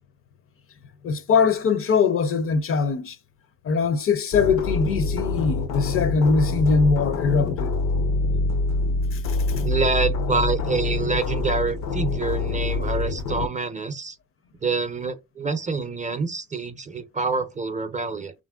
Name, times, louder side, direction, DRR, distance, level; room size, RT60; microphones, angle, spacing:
voice 1, 1.0-3.2 3.6-7.7 9.1-9.4, left 5 dB, 45° left, 0.5 m, -22 dB
sound 1, 4.3-13.5, left 3 dB, 85° left, 0.7 m, -25 dB
voice 2, 9.6-14.2 14.6-18.3, right 4 dB, 25° right, 0.5 m, -26 dB
3.0 x 2.5 x 2.2 m
cardioid pair, 90°, 30 cm